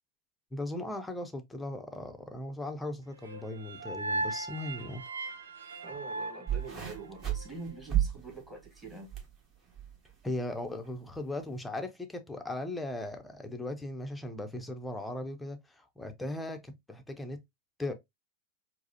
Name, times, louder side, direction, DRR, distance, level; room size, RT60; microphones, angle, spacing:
voice 1, 0.5-5.0 10.2-17.4 17.8-17.9, left 1 dB, 5° left, 0.7 m, -38 dB
sound 1, 3.2-7.4, right 2 dB, 80° right, 0.7 m, -38 dB
voice 2, 5.8-9.1, right 4 dB, 15° right, 1.7 m, -44 dB
sound 2, 6.5-9.3 9.7-10.1 10.9-11.0, right 11 dB, 30° right, 1.6 m, -33 dB
4.7 x 2.1 x 2.8 m
figure-of-eight pair, 95°, 0 cm